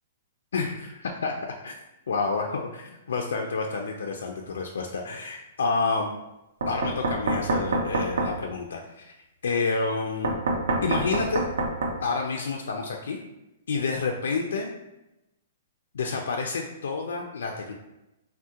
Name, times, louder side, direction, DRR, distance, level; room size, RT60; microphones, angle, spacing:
voice 1, 0.5-1.3 1.6-1.7 2.1-6.1 6.7-9.1 9.4-10.3 10.8-11.4 12.0-13.2 13.7-14.7 15.9-17.7, left 4 dB, 85° left, 2 dB, 0.3 m, -29 dB
Knock, 6.6-8.3 10.2-12.0, right 2 dB, 85° right, 0.5 m, -26 dB
3.5 x 2.1 x 2.7 m, 0.93 s
hypercardioid pair, 180°, 0 cm